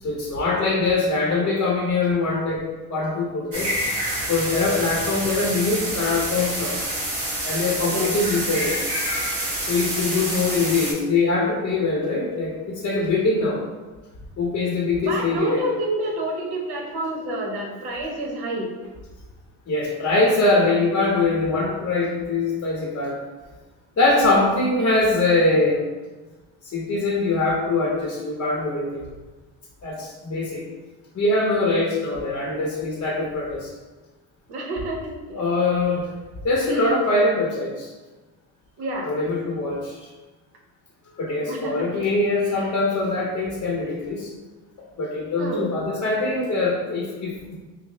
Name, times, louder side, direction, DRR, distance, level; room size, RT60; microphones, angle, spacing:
voice 1, 0.0-2.6 2.9-3.7 4.3-6.8 7.4-8.7 9.7-13.6 14.4-15.6 19.7-23.2 24.0-25.8 26.6-29.1 29.8-30.6 31.1-33.7 35.3-36.1 36.4-37.9 39.0-40.1 41.1-44.3 45.0-47.6, left 3 dB, 40° left, -3 dB, 0.7 m, -23 dB
sound 1, 3.5-10.9, right 1 dB, 35° right, 1.2 m, -27 dB
voice 2, 7.9-8.2 15.0-18.7 34.5-35.4 36.7-36.8 38.8-39.1 41.4-41.7 42.6-42.7 45.4-45.7, right 1 dB, 70° right, 0 dB, 0.9 m, -28 dB
5.6 x 2.0 x 2.2 m, 1.2 s
cardioid pair, 85°, 39 cm